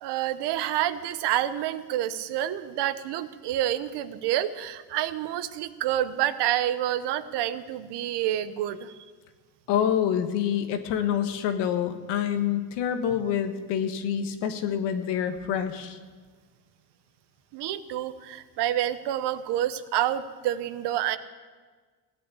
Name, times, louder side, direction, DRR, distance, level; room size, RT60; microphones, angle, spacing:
voice 1, 0.0-8.9 17.5-21.2, right 12 dB, 70° right, 12 dB, 1.0 m, -28 dB
voice 2, 9.7-16.0, left 9 dB, 80° left, 7 dB, 1.5 m, -27 dB
16.5 x 8.8 x 8.4 m, 1.4 s
cardioid pair, 105°, 42 cm